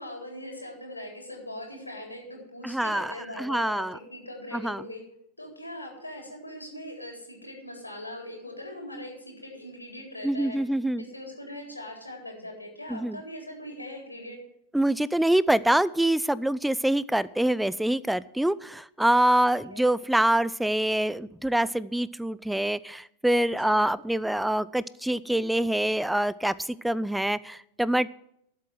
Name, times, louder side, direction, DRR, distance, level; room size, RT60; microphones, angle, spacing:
voice 1, 0.0-5.0 5.4-10.6 11.0-14.4 19.7-19.8 23.6-23.9, left 1 dB, 85° left, 2 dB, 4.0 m, -41 dB
voice 2, 2.6-4.0 4.5-4.8 10.2-11.0 12.9-13.2 14.7-26.5 26.8-28.1, right 1 dB, 5° right, 19 dB, 0.4 m, -25 dB
12.0 x 7.5 x 7.7 m, 0.75 s
figure-of-eight pair, 90°, 0 cm